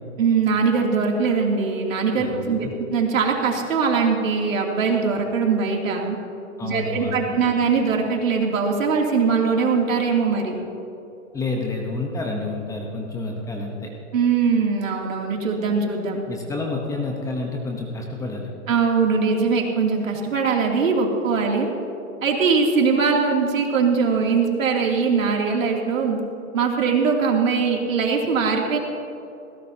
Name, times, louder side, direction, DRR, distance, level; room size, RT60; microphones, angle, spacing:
voice 1, 0.2-6.2 6.6-10.6 14.1-16.2 18.7-21.7 22.2-26.2 26.5-28.8, right 5 dB, 75° right, 0 dB, 3.0 m, -21 dB
voice 2, 2.2-2.7 6.6-7.4 11.3-13.9 16.3-18.5, left 2 dB, 10° left, 0 dB, 1.0 m, -29 dB
20.0 x 17.0 x 2.9 m, 2.8 s
hypercardioid pair, 145°, 40 cm